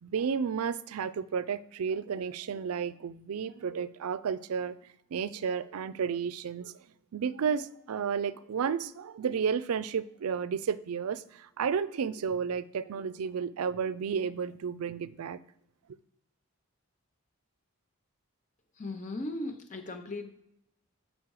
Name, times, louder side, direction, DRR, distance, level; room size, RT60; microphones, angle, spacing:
voice 1, 0.0-4.8 5.1-6.7 7.1-15.4, right 6 dB, 85° right, 0.4 m, -32 dB
voice 2, 18.8-20.3, left 2 dB, 35° left, 0.6 m, -37 dB
7.5 x 5.3 x 4.7 m
head